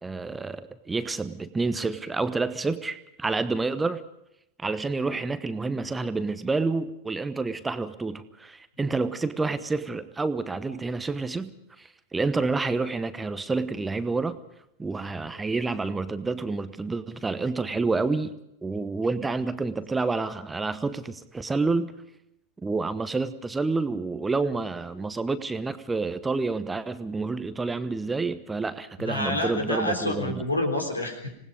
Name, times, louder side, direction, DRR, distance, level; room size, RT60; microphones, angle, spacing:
voice 1, 0.0-4.0 4.6-11.5 11.8-14.4 14.8-18.3 18.6-21.9 22.6-30.4, right 3 dB, 10° right, 13 dB, 1.0 m, -28 dB
voice 2, 29.0-31.3, left 1 dB, 85° left, 3 dB, 3.8 m, -28 dB
26.5 x 19.0 x 5.1 m, 0.80 s
figure-of-eight pair, 90°, 0 cm